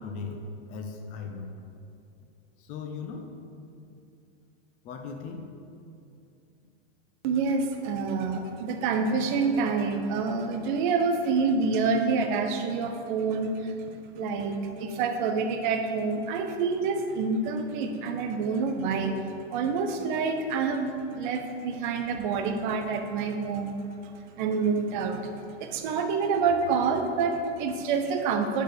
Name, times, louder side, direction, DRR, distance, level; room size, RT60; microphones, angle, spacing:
voice 1, 0.0-1.5 2.6-3.4 3.8-3.9 4.8-5.5, left 4 dB, 25° left, 4 dB, 0.4 m, -38 dB
voice 2, 7.2-13.7 14.1-19.2 19.5-23.8 24.0-28.6, right 4 dB, 45° right, 6 dB, 0.7 m, -27 dB
5.0 x 4.6 x 6.1 m, 2.6 s
hypercardioid pair, 140°, 35 cm